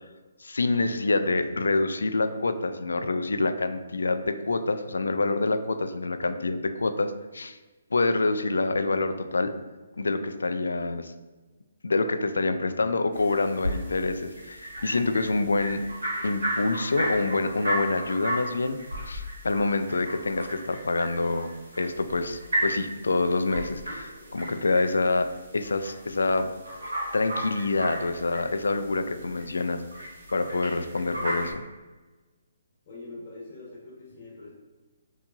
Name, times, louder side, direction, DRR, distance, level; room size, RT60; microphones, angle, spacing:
voice 1, 0.4-7.6 7.9-9.5 10.0-11.1 11.8-15.8 16.2-26.5 27.1-31.6, left 3 dB, 75° left, 9 dB, 0.3 m, -27 dB
sound 1, 13.1-31.5, equal, 80° right, 1.3 m, -35 dB
voice 2, 32.9-34.5, left 2 dB, 35° left, -4 dB, 1.0 m, -43 dB
4.5 x 2.7 x 2.5 m, 1.2 s
figure-of-eight pair, 140°, 0 cm